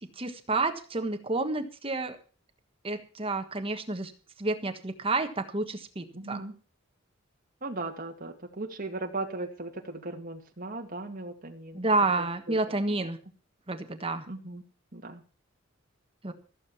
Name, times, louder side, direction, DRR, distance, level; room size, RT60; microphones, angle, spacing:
voice 1, 0.2-2.2 2.8-4.1 4.4-6.4 11.7-13.2 13.7-14.3 16.2-16.3, right 3 dB, 30° right, 7 dB, 1.4 m, -29 dB
voice 2, 6.1-6.5 7.6-11.9 12.5-12.8 14.3-14.6 14.9-15.2, right 2 dB, 45° right, 2 dB, 2.2 m, -37 dB
15.0 x 7.6 x 7.2 m, 0.38 s
head